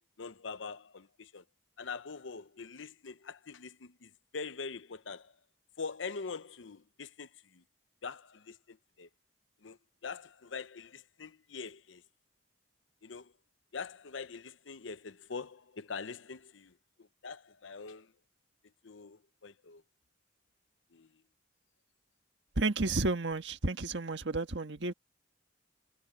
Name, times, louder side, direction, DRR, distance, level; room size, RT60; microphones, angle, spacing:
voice 1, 0.2-1.4 1.8-5.3 5.8-7.6 8.0-9.1 9.6-9.8 10.0-12.0 13.0-13.3 13.7-16.7 17.0-18.1 18.8-19.8 20.9-21.1, left 5 dB, 80° left, 0.8 m, -44 dB
voice 2, 22.6-24.9, right 2 dB, 65° right, 1.6 m, -31 dB
head